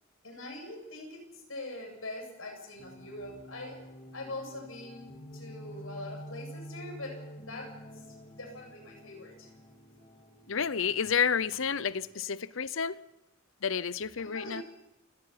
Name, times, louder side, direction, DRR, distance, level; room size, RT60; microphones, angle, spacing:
voice 1, 0.2-1.2 1.5-3.8 4.1-7.7 8.3-9.5 14.2-14.6, left 2 dB, 85° left, 3 dB, 8.0 m, -43 dB
sound 1, 2.8-11.9, equal, 30° left, 3.9 m, -48 dB
voice 2, 10.5-13.0 13.6-14.6, left 7 dB, 70° left, 16 dB, 0.7 m, -30 dB
29.5 x 18.0 x 5.8 m, 0.93 s
head